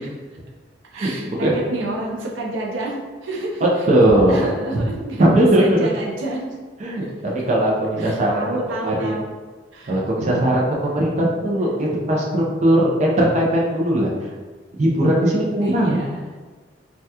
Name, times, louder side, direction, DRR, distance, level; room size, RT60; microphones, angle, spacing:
voice 1, 0.9-3.9 4.2-6.5 7.0-7.4 8.0-9.3 9.7-10.0 15.6-16.3, right 2 dB, 85° right, -2 dB, 0.6 m, -29 dB
voice 2, 3.9-4.5 5.2-5.9 6.8-8.4 8.8-9.1 9.9-14.1 14.8-16.0, right 1 dB, 40° right, -4 dB, 0.5 m, -18 dB
3.4 x 2.2 x 2.8 m, 1.3 s
head